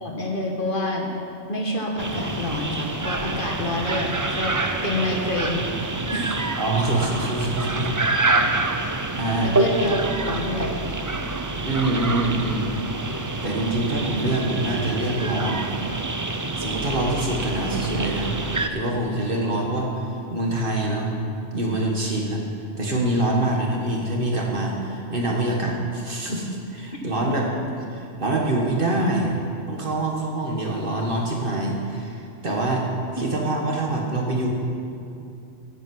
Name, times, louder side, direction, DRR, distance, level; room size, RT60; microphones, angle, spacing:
voice 1, 0.0-1.1 1.5-4.6 4.8-5.6 6.1-6.4 9.4-10.8 27.2-27.4 33.2-33.3, left 1 dB, 45° left, 0 dB, 1.7 m, -28 dB
sound 1, 2.0-18.7, right 2 dB, 25° right, 0.4 m, -27 dB
voice 2, 6.6-7.9 9.2-9.5 11.6-12.7 13.4-15.6 16.6-18.4 18.7-21.1 21.5-22.4 22.8-27.5 27.9-29.3 29.7-32.9 33.1-34.5, right 2 dB, 45° right, -1 dB, 1.7 m, -25 dB
10.5 x 8.7 x 7.8 m, 2.6 s
omnidirectional pair, 1.2 m